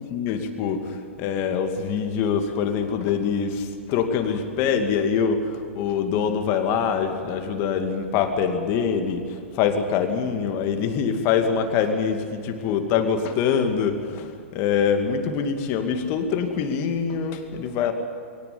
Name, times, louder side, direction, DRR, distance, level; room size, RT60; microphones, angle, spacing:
voice 1, 0.0-17.9, left 6 dB, 35° left, 6 dB, 2.4 m, -24 dB
23.0 x 17.5 x 8.8 m, 2.3 s
figure-of-eight pair, 105°, 7 cm